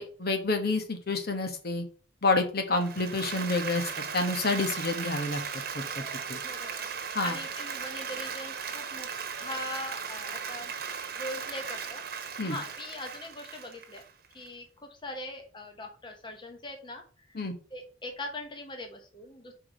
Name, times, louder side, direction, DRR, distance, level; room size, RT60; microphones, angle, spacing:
voice 1, 0.0-1.8 2.2-5.4 5.7-6.0 6.3-6.4 7.1-7.4 12.4-12.5 17.3-17.5, left 3 dB, 50° left, 5 dB, 1.2 m, -29 dB
Applause, 2.7-14.5, right 6 dB, 50° right, 1.2 m, -37 dB
voice 2, 6.4-9.1 9.4-10.7 11.2-12.0 12.4-14.0 14.3-17.4 17.7-19.5, left 1 dB, 25° left, 3 dB, 1.1 m, -41 dB
4.9 x 4.8 x 6.2 m, 0.39 s
head